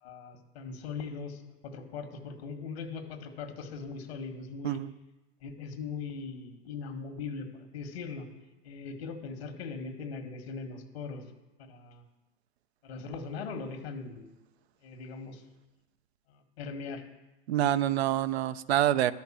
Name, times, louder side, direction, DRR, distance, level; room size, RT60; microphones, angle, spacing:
voice 1, 0.0-4.8 5.4-8.3 8.6-11.2 11.6-12.0 12.8-14.3 14.8-15.4 16.3-17.0, left 5 dB, 80° left, 5 dB, 1.8 m, -40 dB
voice 2, 17.5-19.1, right 12 dB, 80° right, 14 dB, 0.6 m, -26 dB
11.5 x 5.8 x 7.5 m, 1.1 s
hypercardioid pair, 115°, 31 cm